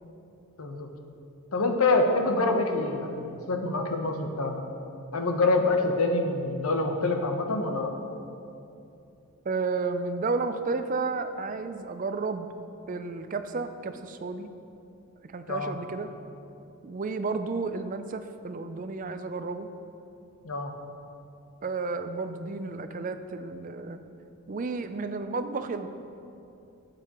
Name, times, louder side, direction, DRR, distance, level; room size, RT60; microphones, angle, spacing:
voice 1, 0.6-0.9 1.5-4.6 5.1-7.9 15.5-15.8 20.4-20.7, left 2 dB, 75° left, 4 dB, 0.9 m, -26 dB
voice 2, 9.5-12.5 12.9-14.5 15.3-16.1 16.8-19.7 21.6-24.0 24.5-25.9, right 4 dB, 35° right, 9 dB, 0.4 m, -32 dB
13.0 x 7.8 x 3.0 m, 2.7 s
head